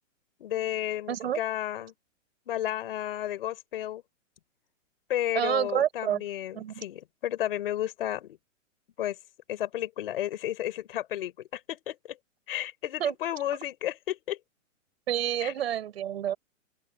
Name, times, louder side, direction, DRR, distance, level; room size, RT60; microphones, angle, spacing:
voice 1, 0.4-1.9 2.5-4.0 5.1-8.4 9.0-9.2 9.5-12.2 12.5-14.4 15.4-15.5, left 12 dB, 45° left, 3.9 m, -32 dB
voice 2, 1.1-1.4 5.3-6.2 6.5-6.8 13.0-13.2 15.1-16.4, right 10 dB, 50° right, 7.1 m, -28 dB
open air
hypercardioid pair, 175°, 39 cm